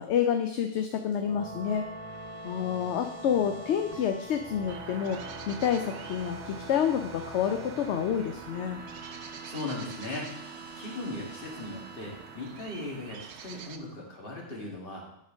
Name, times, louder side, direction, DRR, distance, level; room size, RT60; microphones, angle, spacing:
voice 1, 0.0-1.9 2.4-5.2 5.5-8.8, left 8 dB, 70° left, 6 dB, 0.9 m, -28 dB
sound 1, 0.9-13.3, right 2 dB, 50° right, 1.4 m, -44 dB
sound 2, 4.7-13.8, right 7 dB, 65° right, 0.9 m, -46 dB
voice 2, 9.4-10.3 10.8-15.0, left 2 dB, 50° left, -2 dB, 2.2 m, -38 dB
10.0 x 4.4 x 5.0 m, 0.77 s
omnidirectional pair, 1.3 m